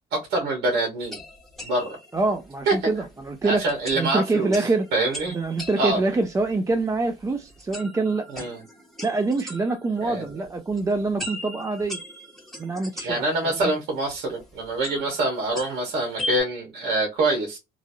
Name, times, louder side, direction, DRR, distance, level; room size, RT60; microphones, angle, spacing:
voice 1, 0.1-1.2 1.6-2.0 2.7-2.8 3.4-4.6 4.9-5.4 5.8-6.0 8.3-8.6 10.0-10.3 13.0-17.6, right 2 dB, 75° right, 1.3 m, -25 dB
sound 1, 1.0-16.4, left 1 dB, ahead, 1.2 m, -40 dB
voice 2, 2.1-3.6 3.9-4.9 5.3-8.5 9.0-12.0 12.6-13.7, right 3 dB, 20° right, 0.4 m, -25 dB
2.9 x 2.5 x 2.7 m
cardioid pair, 110°, 17 cm